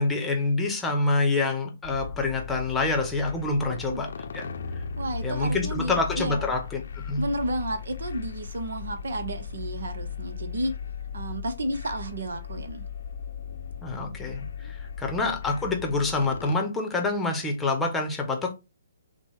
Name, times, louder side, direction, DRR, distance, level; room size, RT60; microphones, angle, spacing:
voice 1, 0.0-4.5 4.7-4.8 5.2-7.3 13.8-18.5, left 3 dB, 10° left, 0.9 m, -27 dB
sound 1, 1.8-16.6, left 6 dB, 60° left, 0.6 m, -37 dB
voice 2, 3.7-4.1 5.0-6.5 7.2-10.7 11.1-12.9 14.6-14.7, right 1 dB, 65° right, 0.8 m, -32 dB
6.0 x 2.2 x 3.4 m
figure-of-eight pair, 135°, 0 cm